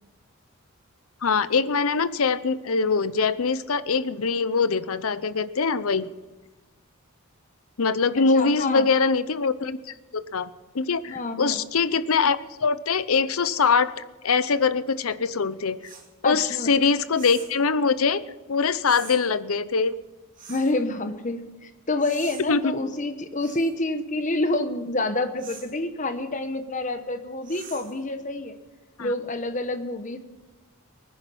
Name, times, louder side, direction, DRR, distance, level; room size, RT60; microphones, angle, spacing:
voice 1, 1.2-6.1 7.8-10.5 10.7-15.8 16.2-18.2 18.5-19.9 22.5-22.7 29.0-29.1, left 5 dB, 75° left, 14 dB, 0.7 m, -23 dB
voice 2, 8.2-8.9 11.1-11.6 16.2-16.7 20.5-28.6 29.0-30.2, left 2 dB, 35° left, 9 dB, 1.0 m, -28 dB
sound 1, 15.8-16.1 17.1-17.6 18.8-19.2 20.4-20.8 22.0-22.4 23.4-23.7 25.4-25.7 27.4-28.0, right 6 dB, 35° right, 2.5 m, -44 dB
20.0 x 10.5 x 5.5 m, 1.2 s
head